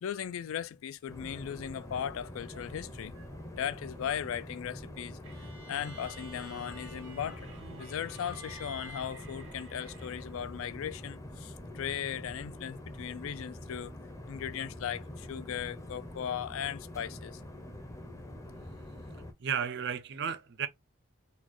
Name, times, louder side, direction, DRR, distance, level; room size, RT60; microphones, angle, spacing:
voice 1, 0.0-3.1 3.5-5.2 5.7-13.9 14.3-17.4, left 9 dB, 80° left, 0.3 m, -37 dB
sound 1, 1.1-19.3, left 1 dB, 15° left, 0.5 m, -45 dB
sound 2, 1.3-5.8, right 6 dB, 70° right, 0.8 m, -61 dB
sound 3, 5.2-10.5, right 2 dB, 85° right, 1.6 m, -50 dB
voice 2, 19.4-20.7, right 7 dB, 55° right, 0.5 m, -33 dB
4.1 x 2.3 x 2.9 m
head